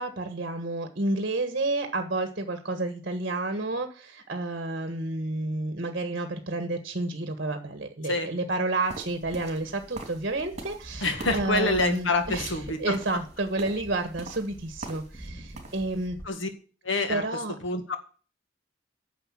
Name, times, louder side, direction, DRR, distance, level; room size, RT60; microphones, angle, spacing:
voice 1, 0.0-16.2 17.1-17.5, right 2 dB, 55° right, 7 dB, 1.4 m, -30 dB
sound 1, 8.8-16.3, equal, 15° left, 2.3 m, -46 dB
sound 2, 8.9-15.3 15.5-16.0, right 2 dB, 40° right, 2.8 m, -43 dB
voice 2, 11.0-12.9 16.3-16.5 16.8-17.2 17.6-17.9, left 2 dB, 80° left, 7 dB, 2.0 m, -26 dB
10.0 x 6.6 x 7.4 m, 0.39 s
head